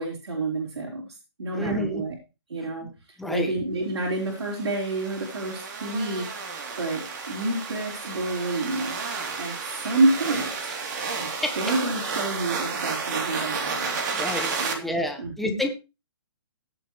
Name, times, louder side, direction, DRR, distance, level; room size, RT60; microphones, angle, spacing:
voice 1, 0.0-2.1 2.5-10.7 11.2-14.0 14.6-15.6, right 2 dB, 85° right, -2 dB, 4.6 m, -29 dB
voice 2, 1.5-2.0 2.8-2.9 3.2-3.5 11.4-11.5 14.1-14.5 14.8-15.7, left 1 dB, ahead, 4 dB, 1.2 m, -28 dB
sound 1, 4.3-14.7, right 5 dB, 45° right, 3.2 m, -32 dB
17.0 x 7.9 x 3.2 m, 0.29 s
hypercardioid pair, 160°, 14 cm